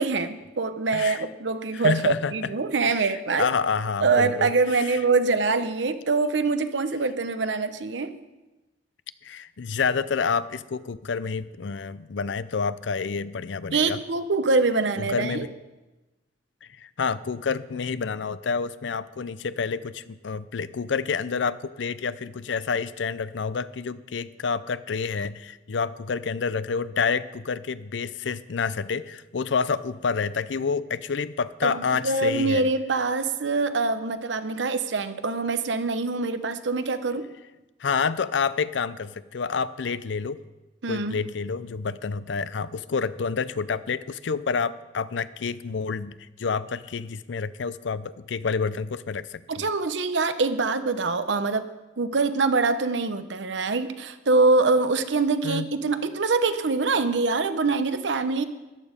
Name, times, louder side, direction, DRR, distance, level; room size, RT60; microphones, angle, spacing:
voice 1, 0.0-3.5 4.0-8.2 13.7-15.5 31.6-37.2 40.8-41.2 49.5-51.7 52.0-58.5, right 3 dB, 80° right, 11 dB, 0.8 m, -24 dB
voice 2, 0.9-1.2 1.7-2.3 2.9-3.1 3.4-4.8 9.2-14.0 15.0-15.5 16.8-32.7 37.8-40.4 40.9-49.7 55.4-55.7, left 5 dB, 85° left, 16 dB, 0.5 m, -28 dB
13.5 x 11.0 x 5.1 m, 1.1 s
head